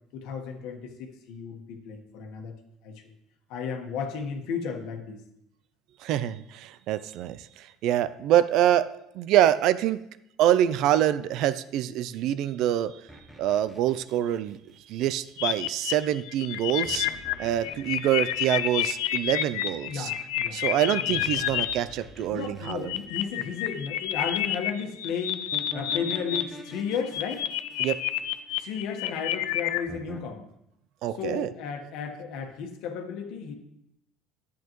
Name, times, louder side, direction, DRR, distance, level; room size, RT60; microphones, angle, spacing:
voice 1, 0.1-2.5 2.8-3.0 3.5-5.2 19.9-20.6 21.1-21.2 22.3-27.5 28.6-30.5 31.1-33.5, left 6 dB, 65° left, 3 dB, 1.3 m, -34 dB
voice 2, 6.0-8.9 9.1-10.0 10.4-13.0 13.4-14.6 14.9-17.1 17.4-20.1 20.5-22.9 27.8-28.0 31.0-31.5, right 11 dB, 55° right, 15 dB, 0.4 m, -25 dB
sound 1, 13.1-15.3 16.8-19.5 21.2-24.0 25.5-28.9 29.9-30.2, right 1 dB, ahead, 1.0 m, -45 dB
sound 2, 15.4-21.7 22.4-26.4 26.7-29.9, left 13 dB, 80° left, 0.5 m, -29 dB
11.0 x 8.1 x 3.1 m, 0.80 s
cardioid pair, 150°, 0 cm